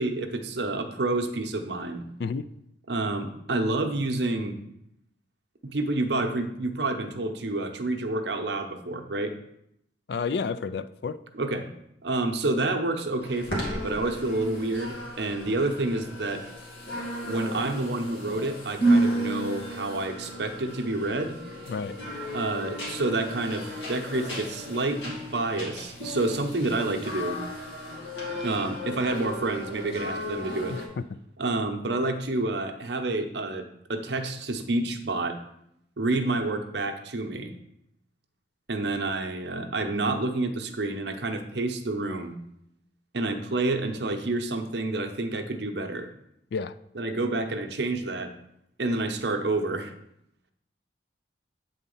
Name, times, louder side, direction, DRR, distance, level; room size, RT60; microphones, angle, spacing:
voice 1, 0.0-2.0 2.9-4.6 5.6-9.3 11.3-11.7 12.0-16.4 17.2-21.4 22.3-27.4 28.4-30.8 31.4-35.4 36.0-37.5 38.7-42.4 43.1-46.1 47.0-48.3 48.8-49.9, right 2 dB, 65° right, 5 dB, 0.8 m, -29 dB
voice 2, 10.1-11.2 21.7-22.0 30.7-31.0 46.5-46.7, left 5 dB, 60° left, 14 dB, 0.3 m, -30 dB
sound 1, 13.2-30.9, right 1 dB, 85° left, 2.2 m, -33 dB
8.4 x 4.0 x 5.5 m, 0.78 s
head